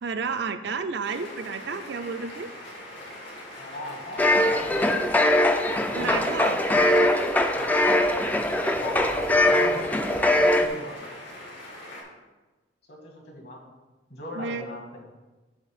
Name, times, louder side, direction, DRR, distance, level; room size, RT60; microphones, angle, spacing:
voice 1, 0.0-2.5 6.0-6.6 14.3-14.8, right 5 dB, 60° right, 8 dB, 0.5 m, -31 dB
sound 1, 1.0-12.0, left 1 dB, 80° left, 2.5 m, -42 dB
voice 2, 3.6-5.1 5.9-7.0 7.5-7.8 8.7-11.2 12.9-13.6 14.1-15.1, left 1 dB, 55° left, -1 dB, 1.8 m, -40 dB
sound 2, 4.2-10.7, left 1 dB, 10° left, 0.3 m, -22 dB
8.0 x 3.4 x 6.5 m, 1.2 s
head